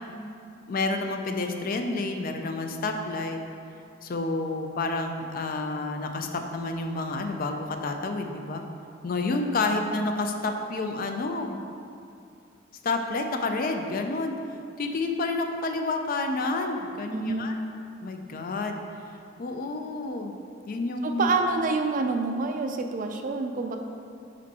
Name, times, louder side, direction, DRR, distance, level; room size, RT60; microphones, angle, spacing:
voice 1, 0.7-3.4 4.0-8.6 9.0-11.6 12.8-14.4 14.8-17.5 18.0-18.8 19.4-20.3 20.7-21.3, left 3 dB, 45° left, 5 dB, 0.4 m, -29 dB
voice 2, 17.1-17.5 21.0-23.8, right 3 dB, 40° right, 5 dB, 0.4 m, -27 dB
5.1 x 4.5 x 4.1 m, 2.5 s
head